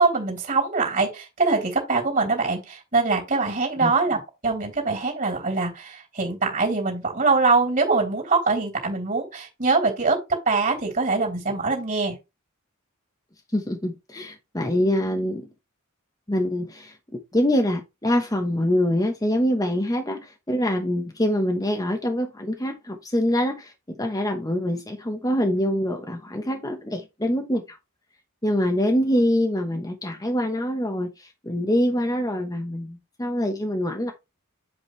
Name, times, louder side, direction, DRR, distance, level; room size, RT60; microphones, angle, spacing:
voice 1, 0.0-10.2 10.5-12.1, right 3 dB, 35° right, 3.1 m, -23 dB
voice 2, 13.5-15.5 16.3-16.9 17.3-27.8 28.4-34.1, equal, 15° left, 1.0 m, -25 dB
8.0 x 5.2 x 3.2 m
head